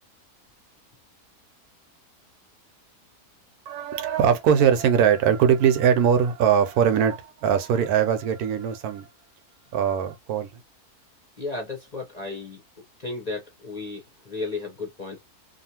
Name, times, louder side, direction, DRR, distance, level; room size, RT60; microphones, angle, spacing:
voice 1, 3.7-9.1 9.7-10.5, right 8 dB, 75° right, 1.1 m, -21 dB
voice 2, 11.4-12.6 13.0-15.2, left 3 dB, 40° left, 0.6 m, -34 dB
2.6 x 2.4 x 2.8 m
omnidirectional pair, 1.6 m